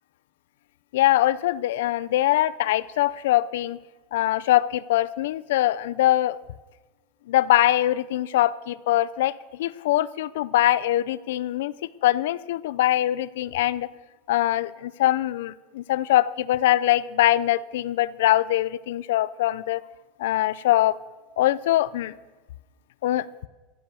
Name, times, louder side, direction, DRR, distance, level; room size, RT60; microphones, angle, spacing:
voice 1, 0.9-3.8 4.1-6.4 7.3-11.7 12.0-13.9 14.3-19.8 20.2-21.0 21.4-22.1 23.0-23.3, left 14 dB, 85° left, 19 dB, 0.5 m, -22 dB
15.0 x 8.5 x 6.9 m, 1.2 s
supercardioid pair, 150°, 0 cm